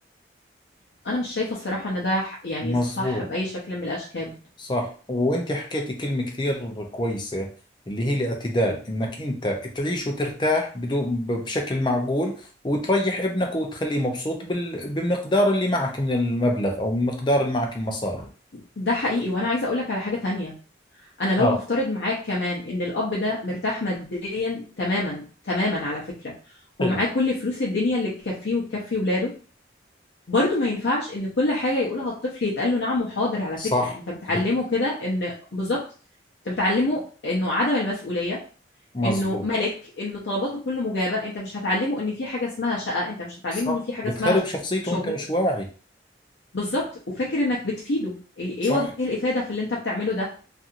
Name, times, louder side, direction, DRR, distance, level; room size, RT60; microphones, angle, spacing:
voice 1, 1.0-4.3 18.8-20.5 21.2-26.3 26.8-29.3 30.3-33.7 34.1-35.8 36.4-38.4 39.0-44.4 44.9-45.1 46.5-50.3, left 2 dB, 75° left, -5 dB, 0.7 m, -26 dB
voice 2, 2.6-3.2 4.6-7.5 7.9-18.3 21.4-21.6 26.8-27.0 33.6-33.9 34.3-34.4 38.9-39.4 43.6-45.7 48.7-48.8, left 1 dB, 25° left, 2 dB, 0.5 m, -25 dB
2.8 x 2.5 x 2.5 m, 0.38 s
head